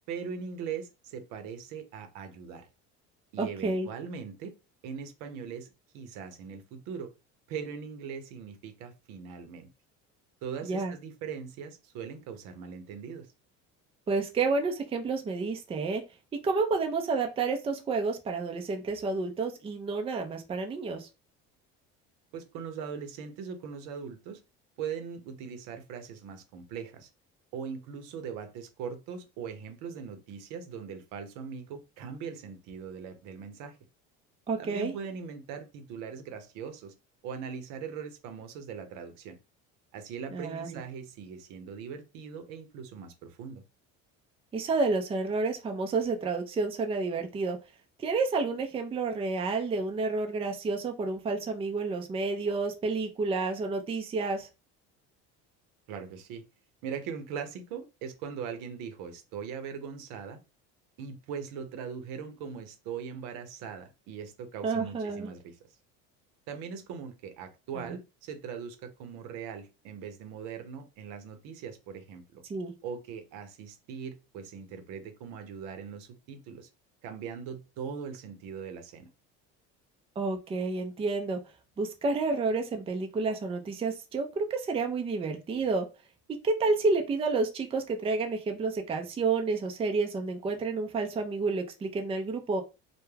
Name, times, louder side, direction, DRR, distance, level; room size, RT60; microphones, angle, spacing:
voice 1, 0.1-2.7 3.3-4.5 4.8-7.1 7.5-9.7 10.4-13.3 22.3-24.4 24.8-27.1 27.5-33.8 34.6-36.9 37.2-39.4 39.9-43.6 55.9-56.4 56.8-60.4 61.0-65.5 66.5-72.4 72.8-76.7 77.0-79.1, right 6 dB, 75° right, 0.7 m, -40 dB
voice 2, 3.4-3.9 10.6-10.9 14.1-16.0 16.3-21.1 34.5-34.9 40.3-40.8 44.5-47.6 48.0-54.5 64.6-65.3 67.7-68.0 72.5-72.7 80.2-81.4 81.8-85.9 86.4-92.6, right 3 dB, 20° right, 0.4 m, -30 dB
2.2 x 2.2 x 3.2 m
supercardioid pair, 105°, 33 cm